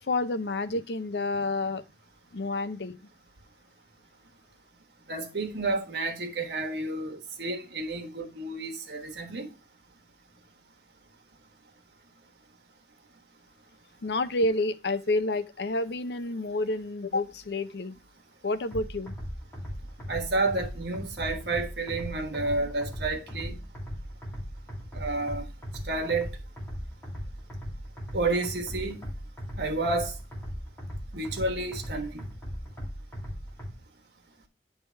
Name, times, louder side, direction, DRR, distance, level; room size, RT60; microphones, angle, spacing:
voice 1, 0.0-1.8 2.3-3.0 14.0-18.0 18.4-19.1, left 2 dB, 75° left, 0.6 m, -29 dB
voice 2, 5.1-9.5 20.1-23.6 24.9-25.5 25.8-26.3 28.1-29.0 29.6-30.2 31.1-32.2, right 2 dB, 75° right, 1.3 m, -30 dB
sound 1, 18.7-33.7, equal, 10° left, 2.2 m, -38 dB
9.4 x 3.4 x 4.4 m
head